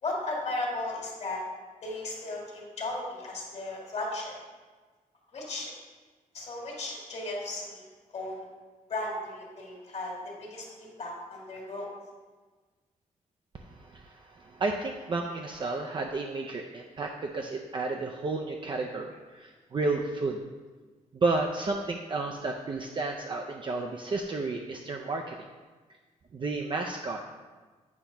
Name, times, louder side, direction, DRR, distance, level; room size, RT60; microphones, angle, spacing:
voice 1, 0.0-1.4 1.8-4.3 5.3-5.7 6.3-7.8 8.1-8.5 8.9-11.9, left 2 dB, 50° left, -3 dB, 1.7 m, -35 dB
voice 2, 13.5-20.4 21.1-25.4 26.3-27.3, right 3 dB, 35° right, 1 dB, 0.4 m, -32 dB
8.4 x 3.0 x 5.6 m, 1.4 s
cardioid pair, 110°, 14 cm